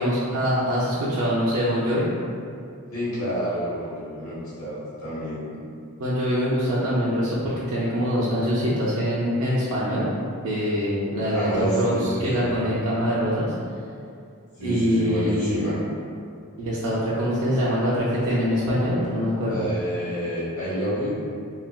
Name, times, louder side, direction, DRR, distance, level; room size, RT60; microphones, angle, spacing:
voice 1, 0.0-2.1 6.0-10.1 10.4-11.5 11.8-13.5 14.6-15.6 16.6-19.6, equal, 80° right, -9 dB, 0.4 m, -24 dB
voice 2, 2.9-5.4 11.3-12.5 14.6-15.8 19.5-21.2, equal, 65° left, -10 dB, 1.2 m, -28 dB
3.2 x 2.1 x 2.2 m, 2.4 s
head